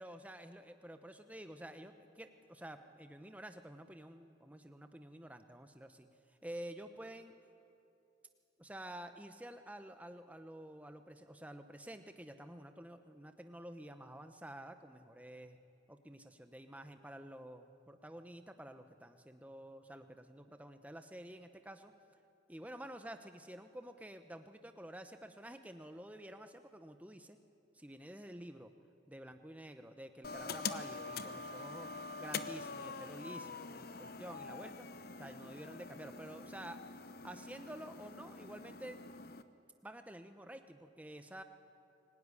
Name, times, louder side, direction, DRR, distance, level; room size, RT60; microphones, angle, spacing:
voice 1, 0.0-7.3 8.6-15.6 15.9-21.9 22.5-27.4 27.7-28.7 29.1-31.9 32.2-34.9 35.2-36.8 37.2-39.0 39.8-41.4, right 1 dB, 10° right, 8 dB, 1.0 m, -50 dB
sound 1, 30.2-39.4, left 4 dB, 50° left, 0.8 m, -45 dB
23.0 x 18.5 x 9.9 m, 2.7 s
head